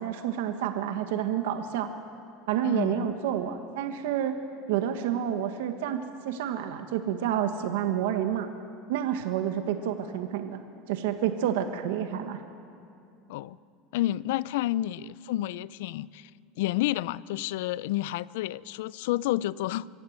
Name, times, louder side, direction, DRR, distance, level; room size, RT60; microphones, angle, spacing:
voice 1, 0.0-1.9 2.5-4.4 4.7-8.5 8.9-10.6 10.9-12.4, right 10 dB, 85° right, 7 dB, 1.4 m, -29 dB
voice 2, 2.6-3.2 13.3-13.6 13.9-16.3 16.6-19.9, left 15 dB, 75° left, 20 dB, 0.4 m, -30 dB
24.5 x 15.5 x 7.8 m, 2.6 s
supercardioid pair, 155°, 0 cm